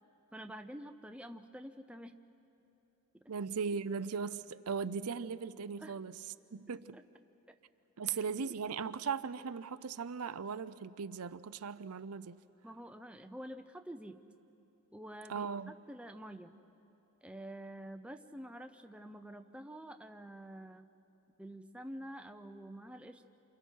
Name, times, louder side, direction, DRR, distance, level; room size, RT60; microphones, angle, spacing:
voice 1, 0.3-2.2 5.8-6.0 6.9-7.0 7.5-7.6 8.0-8.5 12.6-14.2 14.9-16.5 17.2-20.9 21.4-23.2, right 1 dB, 5° right, 6 dB, 0.6 m, -48 dB
voice 2, 3.3-6.2 6.5-7.0 8.0-12.4 15.3-15.7, right 6 dB, 90° right, 13 dB, 0.6 m, -38 dB
29.0 x 28.0 x 4.6 m, 3.0 s
head